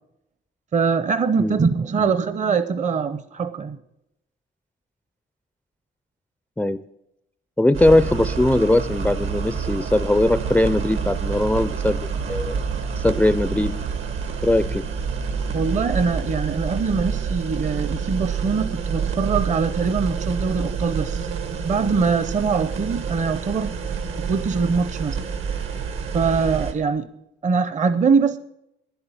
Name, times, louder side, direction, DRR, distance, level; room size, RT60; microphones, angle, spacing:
voice 1, 0.7-3.8 15.5-21.3 21.6-23.7 24.3-25.2 26.1-27.1 27.4-28.4, right 5 dB, 35° right, 0.7 m, -22 dB
voice 2, 7.6-12.6 13.0-13.7 14.4-14.8, left 1 dB, 5° left, 0.4 m, -20 dB
sound 1, 7.7-26.7, right 6 dB, 80° right, 1.6 m, -28 dB
10.0 x 8.1 x 9.0 m
cardioid pair, 90°, 20 cm